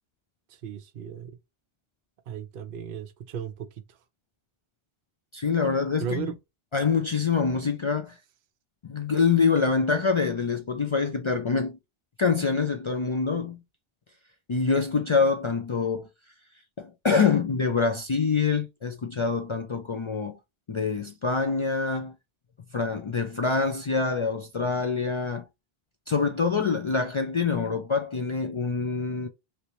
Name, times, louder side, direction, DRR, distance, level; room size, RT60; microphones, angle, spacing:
voice 1, 0.5-1.3 2.3-3.7 6.0-6.3, right 8 dB, 60° right, 0.7 m, -35 dB
voice 2, 5.3-6.3 6.7-8.2 8.8-11.8 12.2-13.6 14.5-16.1 16.8-20.4 20.7-22.1 22.7-25.4 26.1-29.3, left 5 dB, 50° left, 0.3 m, -25 dB
3.2 x 3.0 x 2.7 m
omnidirectional pair, 1.0 m